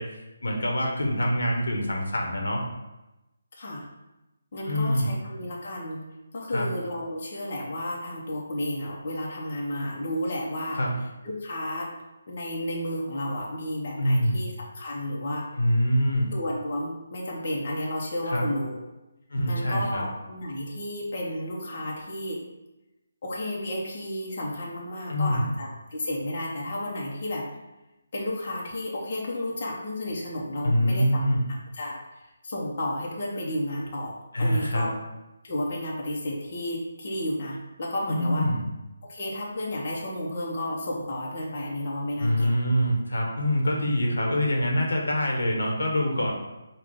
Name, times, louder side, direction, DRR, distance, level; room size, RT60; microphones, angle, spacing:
voice 1, 0.0-2.6 4.6-5.2 6.5-6.7 10.7-10.9 14.0-14.4 15.6-16.3 18.3-18.4 19.3-20.0 25.1-25.5 30.6-31.4 34.3-34.9 38.1-38.6 42.2-46.3, equal, 90° left, 0 dB, 1.0 m, -25 dB
voice 2, 3.6-3.9 4.5-6.0 6.3-10.8 11.2-11.9 12.3-15.4 16.3-18.8 19.5-22.4 23.2-27.5 28.1-31.2 31.5-34.9 35.4-38.4 39.0-42.5, left 1 dB, 40° left, -3 dB, 0.8 m, -32 dB
5.0 x 2.3 x 3.8 m, 0.99 s
hypercardioid pair, 170°, 0 cm